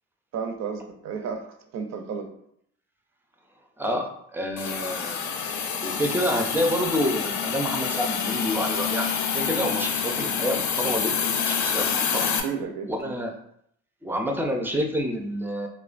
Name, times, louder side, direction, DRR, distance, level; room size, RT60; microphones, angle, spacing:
voice 1, 0.3-1.4 1.7-2.3 12.4-13.1, right 6 dB, 60° right, 6 dB, 0.5 m, -32 dB
voice 2, 3.8-5.2 5.8-12.3 12.9-13.4 14.0-15.7, equal, 5° right, 3 dB, 0.4 m, -28 dB
Hiss, 4.6-12.4, left 7 dB, 70° left, 0.5 m, -27 dB
3.0 x 2.1 x 2.4 m, 0.71 s
cardioid pair, 90°, 30 cm